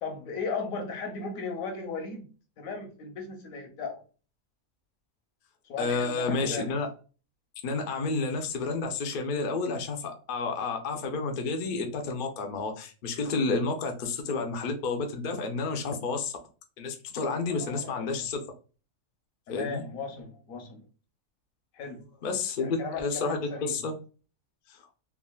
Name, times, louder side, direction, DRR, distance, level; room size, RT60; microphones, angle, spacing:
voice 1, 0.0-2.3 2.6-4.0 5.6-6.7 17.4-18.3 19.5-20.9 21.7-22.1 22.6-23.8, left 4 dB, 75° left, 1.2 m, -36 dB
voice 2, 5.8-6.9 7.6-16.3 16.8-18.4 19.5-19.8 22.2-23.9 24.7-24.8, left 3 dB, 60° left, 0.5 m, -30 dB
3.6 x 2.4 x 2.2 m
omnidirectional pair, 1.5 m